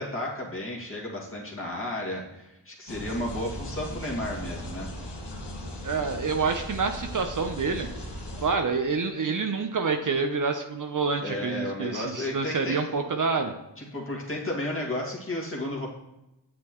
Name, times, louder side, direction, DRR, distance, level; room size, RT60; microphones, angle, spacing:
voice 1, 0.0-4.9 11.2-13.0 13.8-15.9, left 1 dB, 30° left, -3 dB, 2.1 m, -33 dB
sound 1, 2.9-8.5, left 1 dB, 65° left, 1.7 m, -38 dB
voice 2, 5.8-7.9 8.4-13.5, right 4 dB, 45° right, 5 dB, 0.8 m, -27 dB
7.7 x 6.8 x 3.0 m, 0.94 s
cardioid pair, 45°, 44 cm